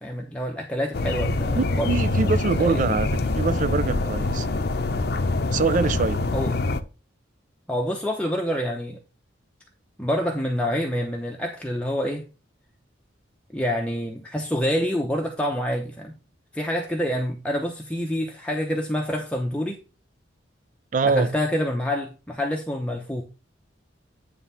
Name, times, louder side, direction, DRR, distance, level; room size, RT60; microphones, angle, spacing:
voice 1, 0.0-1.9 2.6-2.9 6.3-6.5 7.7-9.0 10.0-12.2 13.5-16.2 16.5-19.8 21.0-23.2, equal, 5° left, 0.7 m, -27 dB
sound 1, 0.9-6.8, left 2 dB, 55° left, 0.7 m, -25 dB
voice 2, 1.6-4.5 5.5-6.3 20.9-21.3, right 4 dB, 40° right, 0.4 m, -24 dB
9.3 x 3.4 x 5.5 m
head